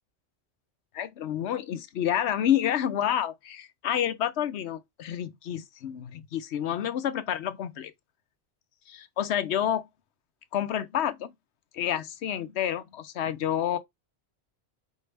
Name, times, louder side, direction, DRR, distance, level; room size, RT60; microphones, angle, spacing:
voice 1, 0.9-7.9 8.9-9.9 10.5-11.3 11.7-13.8, left 10 dB, 80° left, 0.9 m, -29 dB
5.5 x 2.7 x 3.2 m
omnidirectional pair, 1.1 m